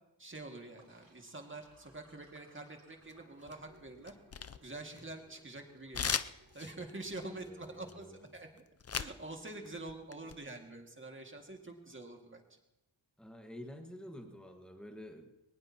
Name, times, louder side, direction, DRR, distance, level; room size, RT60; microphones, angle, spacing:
voice 1, 0.2-4.2 4.6-6.2 6.5-8.6 8.9-12.6, right 2 dB, 25° right, 3 dB, 2.1 m, -46 dB
Sink (filling or washing), 0.5-6.8, right 1 dB, 50° right, 5.3 m, -64 dB
sound 1, 3.1-3.7 4.0-5.3 5.9-9.2 9.5-10.4, left 6 dB, 35° left, 0.5 m, -38 dB
voice 2, 6.9-8.2 13.2-15.3, left 1 dB, ahead, 3 dB, 1.6 m, -49 dB
21.0 x 19.5 x 2.9 m, 0.95 s
wide cardioid pair, 100°, 47 cm